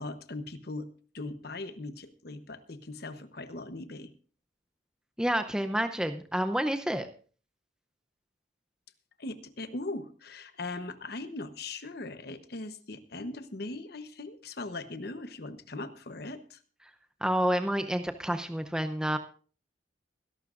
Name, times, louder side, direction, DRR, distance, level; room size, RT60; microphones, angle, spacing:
voice 1, 0.0-4.1 9.2-16.6, left 2 dB, 55° left, 11 dB, 1.0 m, -40 dB
voice 2, 5.2-7.1 17.2-19.2, equal, 5° right, 7 dB, 0.6 m, -29 dB
23.0 x 12.0 x 2.5 m, 0.40 s
head